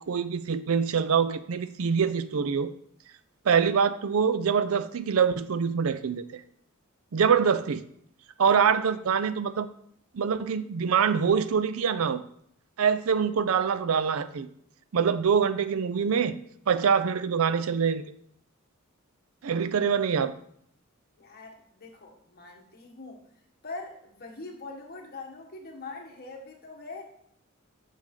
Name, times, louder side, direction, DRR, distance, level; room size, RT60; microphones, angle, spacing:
voice 1, 0.1-2.7 3.5-6.4 7.1-7.8 8.4-9.7 10.1-12.2 12.8-14.5 14.9-16.4 16.7-18.1 19.4-20.3, right 6 dB, 80° right, 0.5 m, -24 dB
voice 2, 21.2-23.2 23.6-27.0, left 3 dB, 50° left, 1.5 m, -42 dB
7.4 x 6.6 x 3.7 m
head